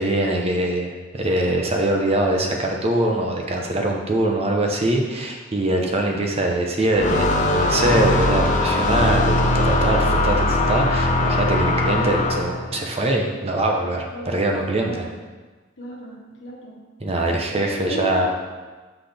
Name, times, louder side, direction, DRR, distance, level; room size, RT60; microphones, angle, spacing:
voice 1, 0.0-15.1 17.0-18.3, right 1 dB, 35° right, 1 dB, 0.7 m, -23 dB
sound 1, 7.0-12.7, left 2 dB, 40° left, 0.6 m, -20 dB
voice 2, 14.1-14.4 14.8-15.1 15.8-16.8 17.6-18.3, equal, 75° left, -1 dB, 1.2 m, -34 dB
5.9 x 5.9 x 3.4 m, 1.3 s
head